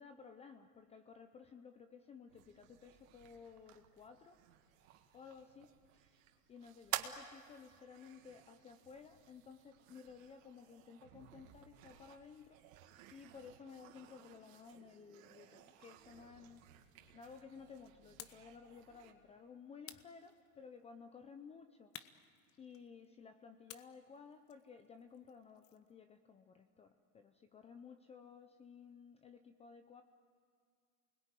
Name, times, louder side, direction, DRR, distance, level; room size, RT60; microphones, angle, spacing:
voice 1, 0.0-4.4 5.1-16.6 17.1-22.0 22.6-30.0, left 6 dB, 15° left, 8 dB, 0.6 m, -56 dB
sound 1, 2.3-19.1, right 9 dB, 65° right, 2.5 m, -65 dB
sound 2, 3.4-10.4, right 11 dB, 90° right, 1.8 m, -49 dB
sound 3, 18.2-18.5 19.8-20.8 21.9-23.0 23.7-25.9, left 11 dB, 30° left, 1.0 m, -56 dB
28.5 x 21.0 x 9.2 m, 2.2 s
supercardioid pair, 140°, 44 cm